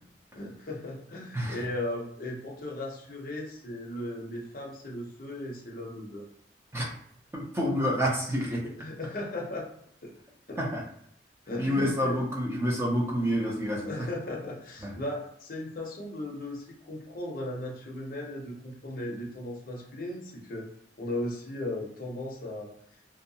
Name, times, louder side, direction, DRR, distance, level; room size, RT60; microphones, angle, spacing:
voice 1, 0.3-6.2 8.8-9.7 10.0-10.1 10.5-10.6 11.5-12.2 13.8-20.7 21.0-22.7, left 1 dB, 50° left, -1 dB, 0.6 m, -36 dB
voice 2, 7.3-8.6 10.6-10.8 11.6-13.9, equal, 15° right, -2 dB, 0.4 m, -28 dB
2.6 x 2.2 x 2.7 m, 0.70 s
head